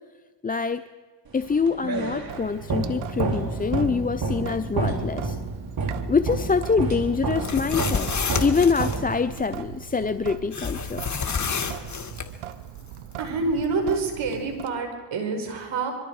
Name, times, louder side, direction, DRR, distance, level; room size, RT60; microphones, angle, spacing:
voice 1, 0.4-0.8 1.3-5.4 6.1-8.1 8.4-11.0, left 5 dB, 20° left, 11 dB, 0.6 m, -25 dB
sound 1, 1.4-9.5, right 3 dB, 45° right, 3.4 m, -29 dB
Sink (filling or washing) / Drip, 2.3-14.7, right 10 dB, 80° right, 1.2 m, -40 dB
sound 2, 7.3-9.0 10.5-12.3, left 6 dB, 35° left, 2.1 m, -29 dB
voice 2, 13.2-15.9, right 3 dB, 65° right, 4 dB, 5.4 m, -27 dB
25.5 x 23.0 x 4.9 m, 1.4 s
cardioid pair, 70°, 49 cm